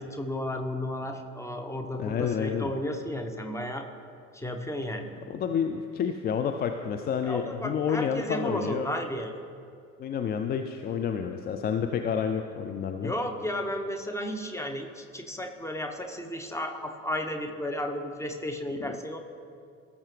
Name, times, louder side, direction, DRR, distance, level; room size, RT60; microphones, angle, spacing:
voice 1, 0.0-3.9 4.3-5.1 7.2-9.3 13.0-19.2, left 1 dB, 5° left, 5 dB, 1.0 m, -33 dB
voice 2, 2.0-2.7 5.3-8.9 10.0-13.1, left 7 dB, 25° left, 6 dB, 0.4 m, -29 dB
17.5 x 6.8 x 3.3 m, 2.4 s
figure-of-eight pair, 60°, 41 cm